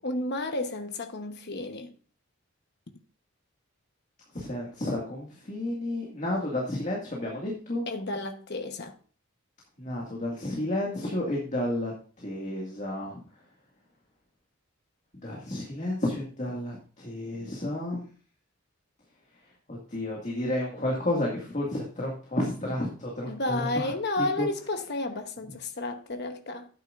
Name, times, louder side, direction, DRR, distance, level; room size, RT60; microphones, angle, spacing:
voice 1, 0.0-1.9 7.9-8.9 23.3-26.7, left 2 dB, 50° left, 1.1 m, -32 dB
voice 2, 4.3-7.8 9.8-13.2 15.2-18.1 19.7-24.5, left 1 dB, 35° left, 2.1 m, -31 dB
12.0 x 9.2 x 2.6 m
head